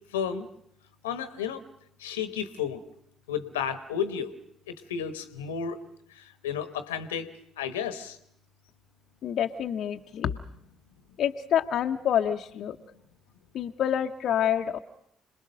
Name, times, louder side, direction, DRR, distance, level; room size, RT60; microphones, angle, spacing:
voice 1, 0.1-0.5 1.0-1.6 2.0-2.8 3.3-4.3 4.7-5.8 6.1-7.3 7.6-8.2, left 7 dB, 85° left, 11 dB, 1.1 m, -32 dB
voice 2, 9.2-10.4 11.2-12.8 13.5-14.8, left 9 dB, 60° left, 4 dB, 0.8 m, -27 dB
26.5 x 20.0 x 6.5 m, 0.71 s
hypercardioid pair, 50°, 0 cm